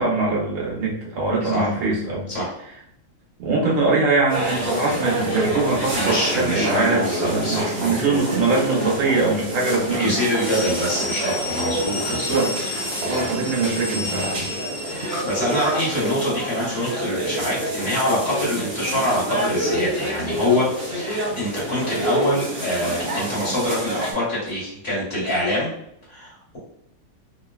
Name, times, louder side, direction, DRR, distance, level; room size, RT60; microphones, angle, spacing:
voice 1, 0.0-2.3 3.4-10.2 12.0-12.7 13.0-14.5, right 3 dB, 85° right, -2 dB, 1.7 m, -22 dB
sound 1, 4.3-24.1, right 1 dB, 70° right, 2.0 m, -27 dB
voice 2, 6.0-8.2 10.0-12.4 13.0-13.3 14.8-25.7 26.1-26.6, left 1 dB, 35° left, -7 dB, 1.3 m, -25 dB
sound 2, 10.2-15.9, left 2 dB, 75° left, 0.8 m, -32 dB
3.8 x 2.0 x 2.3 m, 0.75 s
omnidirectional pair, 2.3 m